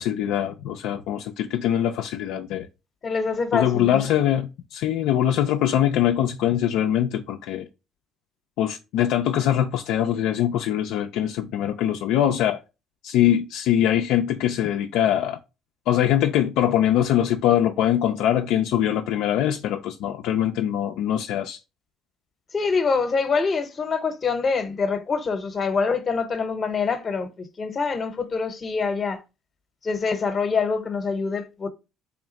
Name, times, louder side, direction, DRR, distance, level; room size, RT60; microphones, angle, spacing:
voice 1, 0.0-2.7 3.5-7.7 8.6-12.6 13.0-15.4 15.9-21.6, left 11 dB, 75° left, 0.3 m, -22 dB
voice 2, 3.0-4.0 22.5-29.2 29.8-31.7, left 5 dB, 40° left, 0.7 m, -25 dB
3.5 x 2.4 x 3.8 m
supercardioid pair, 80°, 0 cm